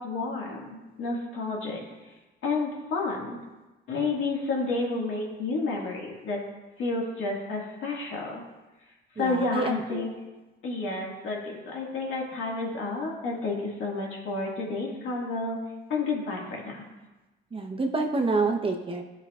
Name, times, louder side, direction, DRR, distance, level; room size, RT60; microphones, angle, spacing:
voice 1, 0.0-1.8 2.4-3.4 3.9-6.4 6.8-8.4 9.2-15.6 15.9-16.8, left 3 dB, 80° left, -2 dB, 2.0 m, -30 dB
voice 2, 9.2-10.1 17.5-19.0, right 3 dB, 25° right, 3 dB, 0.9 m, -27 dB
13.0 x 5.5 x 2.5 m, 1.1 s
cardioid pair, 90°, 20 cm